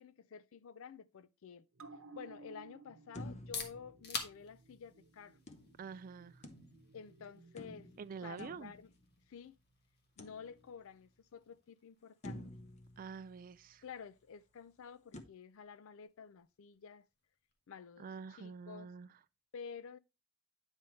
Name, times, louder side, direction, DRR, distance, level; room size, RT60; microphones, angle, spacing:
voice 1, 0.0-1.7 2.1-5.4 6.9-7.9 8.2-8.9 9.3-9.6 10.2-12.4 13.8-17.0 17.7-18.1 18.4-18.9 19.5-20.0, left 6 dB, 65° left, 0.4 m, -51 dB
sound 1, 1.7-8.7 9.0-9.1, right 4 dB, 65° right, 0.9 m, -59 dB
sound 2, 3.1-4.8 5.5-7.1 7.6-9.5 10.2-11.0 11.5-11.6 12.2-13.9 15.1-15.2, left 1 dB, 30° left, 0.8 m, -51 dB
sound 3, 3.2-18.9, left 4 dB, 50° left, 1.4 m, -52 dB
voice 2, 5.8-6.5 8.0-8.7 13.0-13.8 18.0-19.1, right 5 dB, 40° right, 0.3 m, -47 dB
8.9 x 5.4 x 3.1 m
head